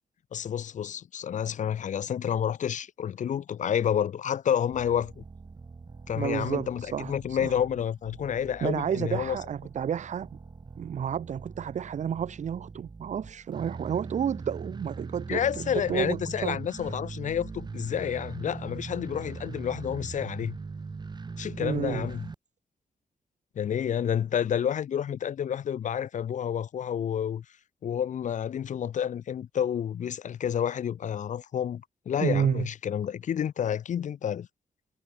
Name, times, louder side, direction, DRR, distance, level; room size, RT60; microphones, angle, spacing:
voice 1, 0.3-5.2 6.1-9.4 15.3-20.6 21.4-22.3 23.6-27.4 27.8-34.5, left 9 dB, 60° left, 0.5 m, -29 dB
sound 1, 4.7-22.4, right 4 dB, 30° right, 1.2 m, -41 dB
voice 2, 6.2-7.6 8.6-10.3 10.8-16.6 21.6-22.1 32.2-32.7, right 8 dB, 55° right, 0.7 m, -31 dB
wide cardioid pair, 125°, 14 cm